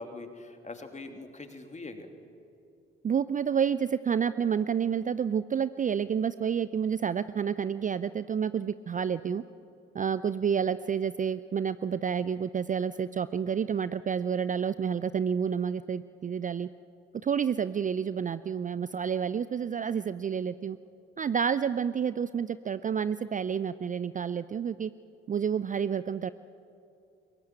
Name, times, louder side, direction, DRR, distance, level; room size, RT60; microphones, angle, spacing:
voice 1, 0.0-2.1, left 2 dB, 25° left, 5 dB, 2.9 m, -42 dB
voice 2, 3.0-9.4 9.9-16.7 17.2-20.8 21.2-24.9 25.3-26.3, right 7 dB, 25° right, 15 dB, 0.5 m, -29 dB
23.0 x 19.5 x 8.9 m, 2.6 s
figure-of-eight pair, 45°, 29 cm